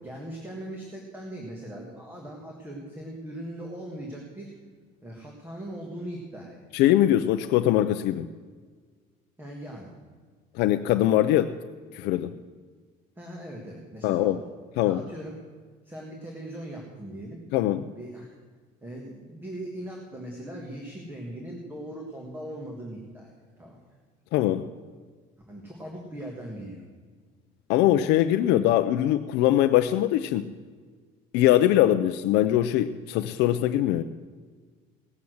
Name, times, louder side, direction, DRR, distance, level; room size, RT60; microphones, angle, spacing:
voice 1, 0.0-4.5 5.0-6.6 9.4-9.9 13.2-14.4 14.8-15.4 15.8-17.4 17.9-18.3 18.8-23.8 25.5-26.8, right 1 dB, 10° right, -1 dB, 1.6 m, -39 dB
voice 2, 6.7-8.3 10.5-11.6 11.9-12.3 14.0-14.4 14.8-15.0 17.5-17.8 24.3-24.7 27.7-30.5 31.3-34.0, left 13 dB, 80° left, 9 dB, 0.5 m, -22 dB
17.0 x 7.1 x 7.8 m, 1.5 s
cardioid pair, 170°, 17 cm